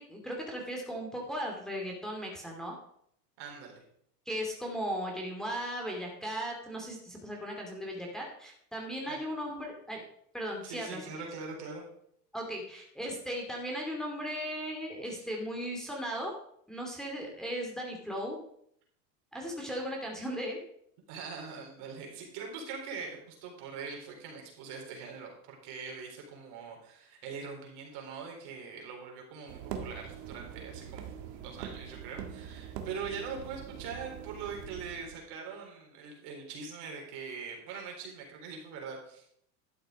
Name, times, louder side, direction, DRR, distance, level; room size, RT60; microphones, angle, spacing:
voice 1, 0.0-2.7 4.3-10.0 10.3-11.0 12.3-16.3 16.7-18.4 19.3-20.6, equal, ahead, -1 dB, 2.7 m, -37 dB
voice 2, 3.4-3.8 9.0-9.2 10.6-11.8 15.1-15.3 21.1-39.3, right 5 dB, 55° right, 1 dB, 4.2 m, -42 dB
sound 1, 29.5-35.1, right 8 dB, 70° right, 1.9 m, -43 dB
12.0 x 6.7 x 5.1 m, 0.68 s
supercardioid pair, 115°, 49 cm